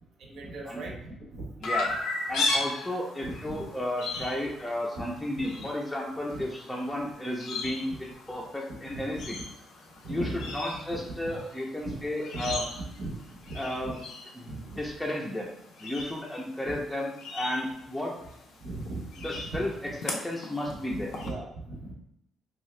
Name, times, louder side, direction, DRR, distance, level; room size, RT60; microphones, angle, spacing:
voice 1, 0.2-1.7 3.2-3.6 4.2-4.3 5.0-5.1 5.6-5.7 6.3-6.4 7.9-8.0 8.9-9.3 10.0-10.4 10.9-11.0 11.8-12.0 12.3-13.2 13.4-13.9 14.4-14.8 16.7-16.8 18.6-19.0 19.8-19.9 20.7-21.8, right 2 dB, 80° right, -1 dB, 0.7 m, -38 dB
Chirp tweet, 1.6-21.3, left 2 dB, 80° left, 0.5 m, -38 dB
voice 2, 1.6-2.0 2.3-9.4 10.1-12.6 13.5-14.0 14.3-15.5 15.8-18.1 19.2-21.1, left 1 dB, 10° left, -3 dB, 0.5 m, -33 dB
2.7 x 2.3 x 3.1 m, 0.77 s
cardioid pair, 90°, 0 cm